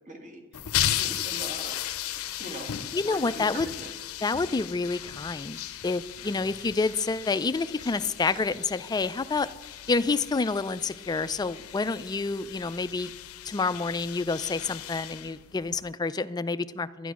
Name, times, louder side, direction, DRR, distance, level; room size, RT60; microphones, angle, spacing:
voice 1, 0.0-1.8 2.4-3.9 6.2-6.5, right 2 dB, 35° right, 2 dB, 1.9 m, -42 dB
sound 1, 0.5-15.9, left 12 dB, 80° left, 0.6 m, -36 dB
voice 2, 2.9-3.7 4.2-5.6 5.8-9.5 9.9-13.1 13.4-17.1, left 4 dB, 20° left, 14 dB, 0.3 m, -28 dB
11.5 x 10.0 x 6.0 m, 1.3 s
head